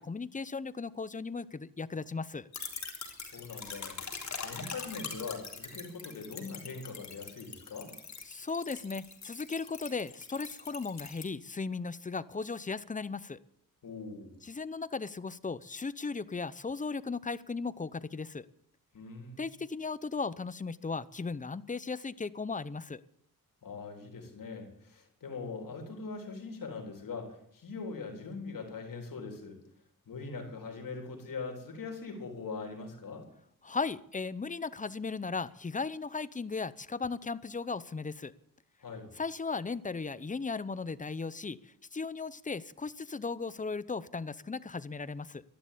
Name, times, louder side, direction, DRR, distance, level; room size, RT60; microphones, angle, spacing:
voice 1, 0.0-2.5 8.3-13.4 14.4-18.5 19.4-23.0 33.6-38.3 39.2-41.6 41.9-45.4, left 4 dB, 20° left, 17 dB, 0.7 m, -36 dB
sound 1, 2.5-11.3, left 5 dB, 50° left, 3.9 m, -43 dB
voice 2, 3.2-4.0 4.4-7.9 13.8-14.3 18.9-19.5 23.6-29.6 30.1-33.3 38.8-39.1, left 4 dB, 70° left, 3 dB, 3.7 m, -42 dB
13.5 x 11.5 x 8.4 m, 0.67 s
cardioid pair, 95°, 35 cm